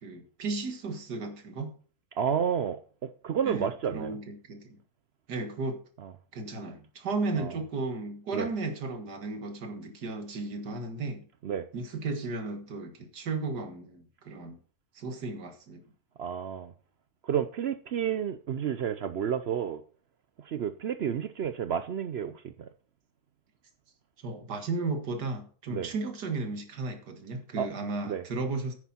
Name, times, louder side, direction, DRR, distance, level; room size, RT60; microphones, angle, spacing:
voice 1, 0.0-1.8 3.4-4.8 5.3-5.8 6.3-11.3 11.7-14.6 14.9-15.8 24.2-28.7, right 3 dB, 90° right, 2.2 m, -34 dB
voice 2, 2.2-4.2 7.4-7.5 8.3-8.5 11.4-11.7 16.2-16.7 17.2-19.8 20.4-22.7 25.7-25.9 27.6-27.7 28.0-28.2, right 8 dB, 65° right, 0.6 m, -31 dB
9.9 x 9.2 x 4.3 m
omnidirectional pair, 1.7 m